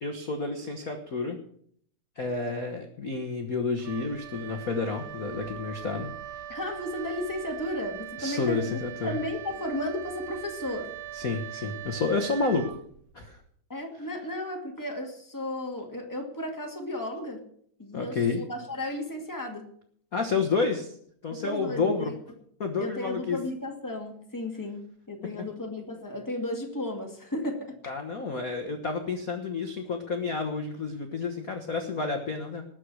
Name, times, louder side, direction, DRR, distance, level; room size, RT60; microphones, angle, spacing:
voice 1, 0.0-1.4 2.1-6.1 8.2-9.2 11.1-12.6 13.1-13.4 17.9-18.4 20.1-21.0 21.2-22.1 22.6-23.4 27.9-32.6, left 4 dB, 60° left, 3 dB, 0.8 m, -30 dB
Wind instrument woodwind instrument, 3.8-13.3, right 11 dB, 70° right, 1.9 m, -41 dB
voice 2, 6.5-10.9 13.7-17.4 17.8-19.7 21.3-22.2 22.8-27.9, left 1 dB, 10° left, 2 dB, 1.6 m, -34 dB
19.5 x 6.6 x 6.2 m, 0.63 s
omnidirectional pair, 3.6 m